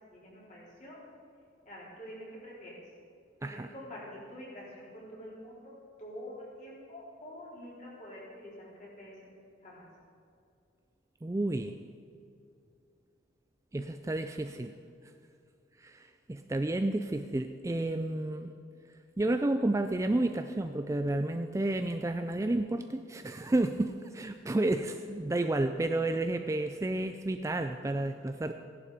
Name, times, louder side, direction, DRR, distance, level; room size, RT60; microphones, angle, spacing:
voice 1, 0.1-1.0 1.6-2.7 3.4-9.9, equal, 40° left, -6 dB, 4.2 m, -47 dB
voice 2, 11.2-11.8 13.7-14.7 15.8-18.5 19.2-28.5, right 2 dB, 15° right, 7 dB, 0.3 m, -31 dB
15.5 x 11.0 x 5.0 m, 2.5 s
head